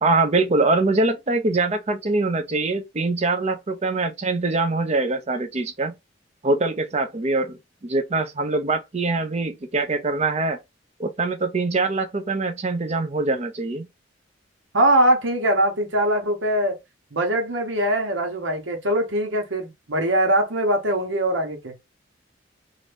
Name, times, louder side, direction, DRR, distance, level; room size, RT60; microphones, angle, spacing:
voice 1, 0.0-5.9 6.4-10.6 11.0-13.9, right 3 dB, 35° right, 0.6 m, -23 dB
voice 2, 14.7-16.8 17.1-21.7, right 1 dB, 80° right, 1.2 m, -22 dB
2.8 x 2.6 x 3.4 m
head